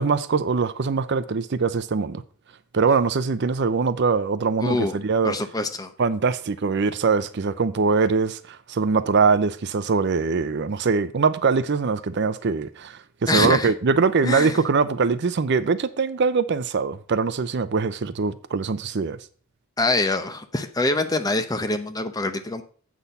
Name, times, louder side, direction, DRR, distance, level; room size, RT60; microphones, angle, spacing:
voice 1, 0.0-2.2 2.7-5.4 6.0-19.2, right 4 dB, 50° right, 0.5 m, -22 dB
voice 2, 4.6-5.0 5.2-5.9 13.3-13.7 14.2-14.6 19.8-22.6, left 2 dB, 15° left, 0.7 m, -24 dB
8.4 x 6.1 x 5.4 m
head